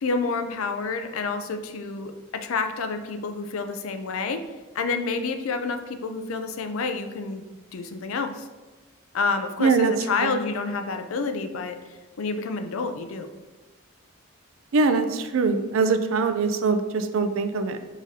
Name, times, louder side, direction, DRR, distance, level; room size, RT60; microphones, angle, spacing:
voice 1, 0.0-4.4 4.7-7.4 7.7-8.5 9.1-11.8 12.2-13.3, left 4 dB, 80° left, 8 dB, 0.4 m, -28 dB
voice 2, 9.6-9.9 10.2-10.4 14.7-17.8, right 4 dB, 70° right, 9 dB, 0.4 m, -22 dB
4.9 x 3.7 x 2.7 m, 1.2 s
head